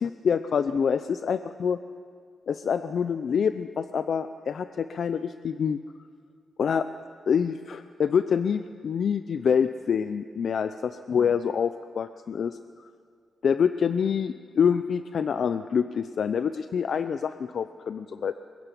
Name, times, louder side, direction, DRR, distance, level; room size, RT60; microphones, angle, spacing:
voice 1, 0.0-1.8 2.5-5.8 6.6-6.9 7.3-12.6 13.4-18.3, left 7 dB, 65° left, 10 dB, 0.7 m, -26 dB
22.5 x 22.0 x 9.9 m, 2.1 s
cardioid pair, 65°, 0 cm